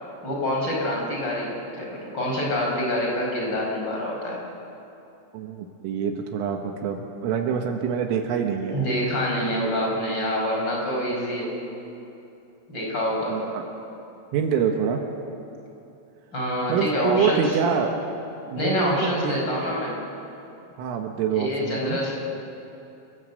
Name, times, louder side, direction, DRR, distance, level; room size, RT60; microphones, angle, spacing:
voice 1, 0.2-4.4 8.7-11.5 12.7-13.5 16.3-17.6 18.6-20.0 21.3-22.1, equal, 20° left, -2 dB, 5.3 m, -26 dB
voice 2, 5.3-8.8 13.3-13.6 14.3-15.0 16.7-18.0 18.5-19.4 20.8-22.0, right 7 dB, 80° right, 3 dB, 3.9 m, -26 dB
29.5 x 17.0 x 7.9 m, 2.8 s
omnidirectional pair, 5.8 m